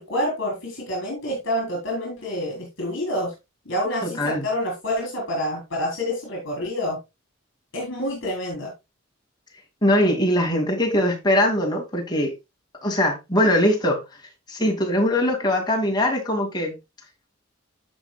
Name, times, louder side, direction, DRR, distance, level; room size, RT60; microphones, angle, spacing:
voice 1, 0.0-3.3 3.7-7.0 7.7-8.7, left 1 dB, 65° left, 3.7 m, -27 dB
voice 2, 4.0-4.5 9.8-12.3 12.8-14.0 14.5-16.7, left 1 dB, 20° left, 2.3 m, -21 dB
14.5 x 5.3 x 2.3 m
head